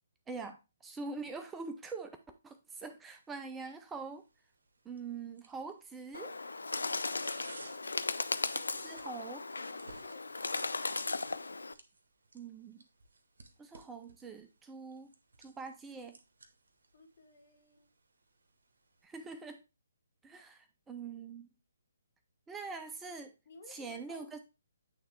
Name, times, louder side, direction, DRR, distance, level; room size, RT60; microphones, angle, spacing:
voice 1, 0.3-2.2 2.4-2.5 2.8-4.2 4.8-6.4 8.5-9.5 12.3-12.8 13.6-15.1 15.4-16.2 19.0-19.6 20.2-21.5 22.5-23.3 23.7-24.4, right 4 dB, 10° right, 7 dB, 0.5 m, -44 dB
sound 1, 3.1-19.0, right 3 dB, 65° right, 1.1 m, -59 dB
Bird, 6.1-11.7, left 3 dB, 80° left, 0.4 m, -37 dB
voice 2, 7.4-7.8 9.6-10.2 16.9-17.9 23.1-23.2 23.4-24.4, left 3 dB, 50° left, 4 dB, 1.5 m, -56 dB
8.8 x 3.3 x 4.3 m, 0.28 s
figure-of-eight pair, 135°, 0 cm